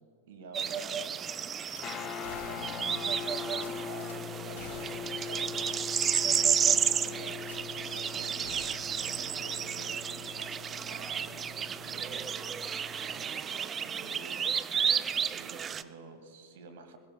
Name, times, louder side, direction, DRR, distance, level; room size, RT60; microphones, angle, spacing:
voice 1, 0.3-1.5 1.9-8.6 9.0-12.3 12.6-14.4 15.3-17.0, right 3 dB, 55° right, 9 dB, 1.8 m, -49 dB
sound 1, 0.5-15.8, right 7 dB, 20° right, 0.5 m, -32 dB
Gunshot gunfire / Glass, 1.6-1.8 2.2-3.0 3.5-4.2 4.6-5.2 5.5-5.6 6.1-6.2 7.4-8.0 8.4-10.2 10.6-10.7, left 5 dB, 55° left, 2.0 m, -50 dB
Guitar, 1.8-13.2, left 8 dB, 30° left, 0.6 m, -42 dB
27.0 x 16.5 x 2.3 m, 2.7 s
figure-of-eight pair, 95°, 0 cm